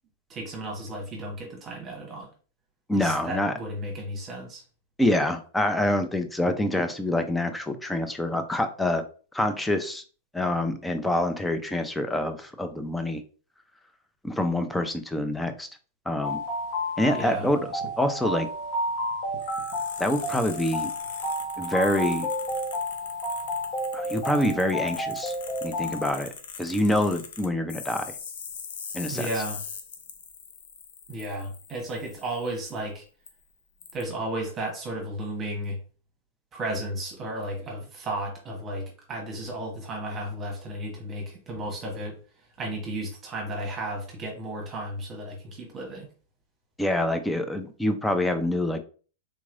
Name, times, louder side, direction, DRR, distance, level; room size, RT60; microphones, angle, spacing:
voice 1, 0.3-2.3 3.0-4.6 17.1-17.5 29.1-29.6 31.1-33.0 33.9-35.8 36.5-42.2 42.6-46.1, right 1 dB, 30° right, 0 dB, 1.2 m, -34 dB
voice 2, 2.9-3.5 5.0-9.0 9.3-10.0 10.3-13.2 14.2-15.7 16.1-16.4 17.0-17.6 18.0-18.5 20.0-20.9 21.6-22.3 23.9-25.3 25.6-26.3 26.6-28.1 28.9-29.3 46.8-48.8, left 1 dB, 5° left, 7 dB, 0.5 m, -26 dB
sound 1, 16.2-26.1, equal, 40° left, 1.3 m, -31 dB
sound 2, 19.4-32.8 33.3-33.4 33.8-34.0, left 6 dB, 70° left, 0.6 m, -41 dB
3.6 x 3.0 x 2.5 m, 0.39 s
hypercardioid pair, 115°, 0 cm